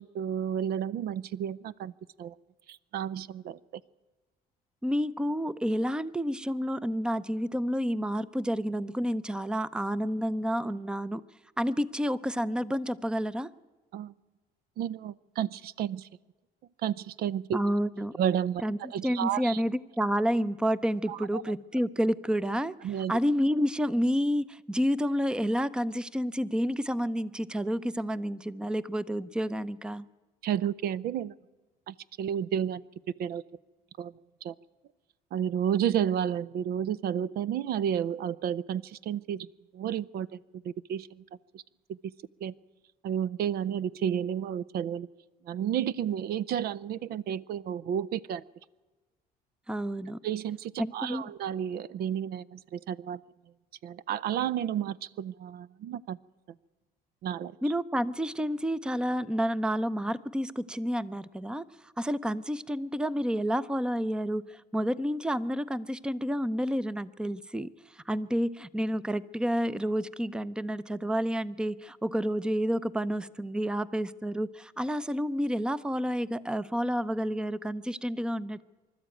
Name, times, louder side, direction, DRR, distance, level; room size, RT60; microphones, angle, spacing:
voice 1, 0.0-1.9 2.2-2.4 2.7-3.6 13.9-14.1 14.8-16.1 16.8-17.6 18.2-19.6 21.1-21.4 22.8-23.1 30.4-31.3 31.9-32.8 33.2-33.4 34.0-34.1 34.4-34.5 35.3-39.5 39.7-40.4 40.6-41.2 41.5-41.6 41.9-42.1 42.4-42.5 43.0-45.1 45.4-48.4 50.2-53.2 53.8-56.2 57.2-57.5, right 9 dB, 65° right, 20 dB, 0.5 m, -31 dB
voice 2, 4.8-11.2 11.6-13.5 17.5-18.1 18.6-22.7 23.1-30.1 49.7-50.2 50.8-51.2 57.6-61.7 62.0-78.6, equal, 5° right, 18 dB, 0.6 m, -29 dB
25.0 x 13.0 x 9.1 m, 1.3 s
cardioid pair, 110°, 17 cm